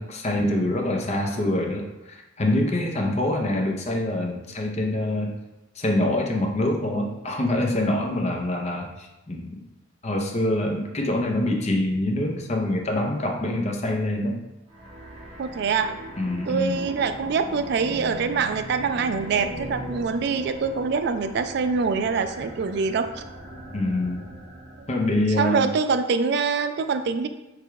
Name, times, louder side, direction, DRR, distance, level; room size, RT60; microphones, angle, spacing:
voice 1, 0.0-5.3 5.8-9.6 10.0-14.4 16.2-16.9 23.7-24.3 24.9-25.6, left 1 dB, 35° left, 1 dB, 0.6 m, -25 dB
sound 1, 14.7-25.3, equal, 30° right, 1.1 m, -40 dB
voice 2, 15.4-16.0 16.5-23.2 24.8-24.9 25.4-27.3, right 5 dB, 55° right, 9 dB, 0.3 m, -25 dB
4.8 x 2.2 x 4.6 m, 0.95 s
head